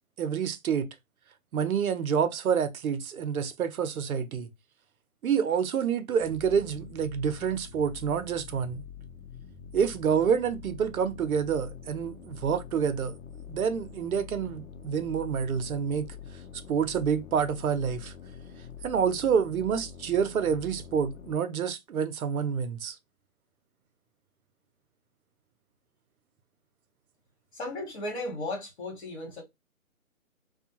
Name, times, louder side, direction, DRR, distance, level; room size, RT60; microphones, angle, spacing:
voice 1, 0.2-0.9 1.5-4.5 5.2-8.8 9.7-13.1 13.5-16.1 16.7-18.1 18.8-23.0, right 7 dB, 75° right, 0.6 m, -28 dB
sound 1, 6.2-21.4, left 7 dB, 70° left, 0.7 m, -45 dB
voice 2, 27.5-29.4, left 2 dB, 50° left, 1.6 m, -35 dB
2.6 x 2.2 x 2.8 m
hypercardioid pair, 165°, 43 cm